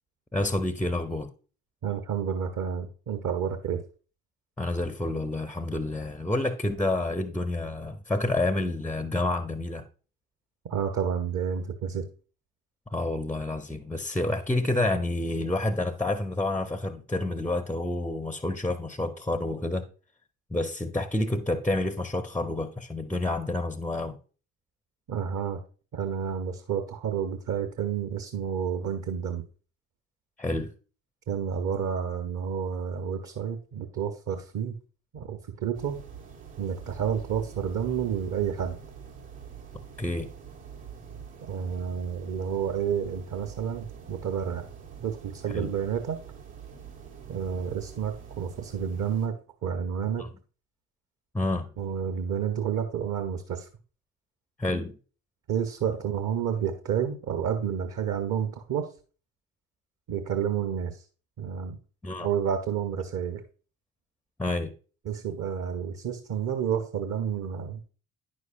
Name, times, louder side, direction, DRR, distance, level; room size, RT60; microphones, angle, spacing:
voice 1, 0.3-1.3 4.6-9.8 12.9-19.9 20.5-24.2 30.4-30.7 40.0-40.3 45.5-45.7 50.2-50.3 51.3-51.7 54.6-55.0 62.0-62.3 64.4-64.7, left 2 dB, 5° left, 0.5 m, -29 dB
voice 2, 1.8-3.8 10.7-12.0 25.1-25.6 25.9-29.4 31.3-34.8 35.1-36.0 36.6-38.8 41.5-44.7 45.0-46.2 47.3-49.4 49.6-50.2 51.8-53.7 55.5-58.9 60.1-61.0 61.4-61.8 62.2-63.4 65.0-67.8, right 8 dB, 45° right, 0.9 m, -30 dB
sound 1, 35.7-49.3, right 7 dB, 75° right, 1.8 m, -45 dB
9.5 x 6.2 x 2.5 m
figure-of-eight pair, 50°, 43 cm